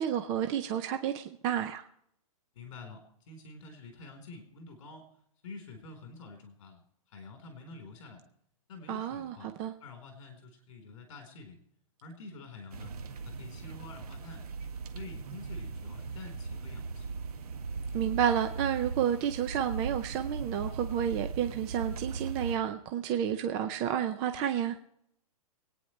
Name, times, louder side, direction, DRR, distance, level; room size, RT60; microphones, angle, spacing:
voice 1, 0.0-1.8 8.9-9.7 17.9-24.8, right 9 dB, 20° right, 0.6 m, -30 dB
voice 2, 2.5-5.1 5.4-6.8 7.1-8.2 8.7-9.5 9.8-11.6 12.0-12.9 13.2-14.5 14.9-17.1, left 3 dB, 55° left, 4.2 m, -48 dB
sound 1, 12.7-22.6, right 4 dB, 90° right, 1.7 m, -39 dB
24.0 x 9.5 x 3.3 m
hypercardioid pair, 165°, 19 cm